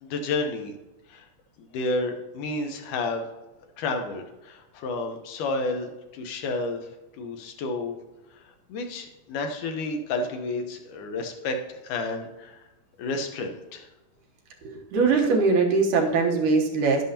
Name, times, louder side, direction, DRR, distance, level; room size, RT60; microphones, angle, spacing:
voice 1, 0.0-0.7 1.1-1.3 1.6-3.3 3.8-6.8 7.2-8.0 8.7-12.6 13.0-13.9, left 3 dB, 75° left, 4 dB, 2.5 m, -31 dB
voice 2, 14.6-17.0, right 4 dB, 70° right, 1 dB, 2.6 m, -22 dB
11.0 x 11.0 x 2.9 m, 1.0 s
omnidirectional pair, 3.8 m